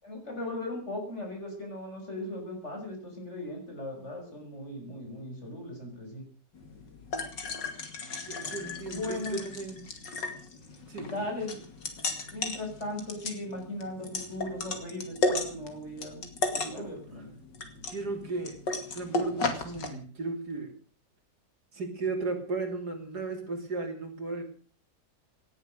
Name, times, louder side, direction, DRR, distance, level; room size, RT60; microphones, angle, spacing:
voice 1, 0.0-6.2 8.8-9.4 10.9-11.7 12.3-16.3 16.5-17.3, left 1 dB, 40° left, 1 dB, 6.6 m, -38 dB
sound 1, 6.5-19.9, left 3 dB, 85° left, 3.1 m, -35 dB
voice 2, 8.3-9.8 10.9-11.3 16.6-17.2 17.8-18.6 18.9-20.7 21.7-24.4, right 3 dB, 65° right, 4 dB, 3.7 m, -35 dB
18.5 x 11.0 x 6.6 m, 0.42 s
omnidirectional pair, 1.9 m